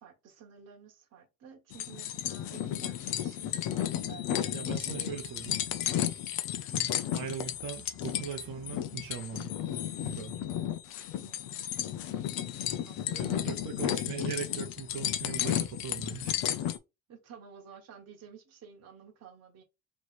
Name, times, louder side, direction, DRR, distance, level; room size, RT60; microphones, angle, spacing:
voice 1, 0.0-3.8 4.1-5.1 6.1-6.2 11.2-11.7 12.8-13.4 17.1-19.6, right 7 dB, 50° right, 1.2 m, -52 dB
sound 1, 1.7-16.8, left 11 dB, 80° left, 0.7 m, -33 dB
voice 2, 4.5-5.6 6.7-9.5 10.0-10.4 13.1-16.4, right 7 dB, 70° right, 0.8 m, -40 dB
3.2 x 3.0 x 4.2 m
cardioid pair, 150°, 34 cm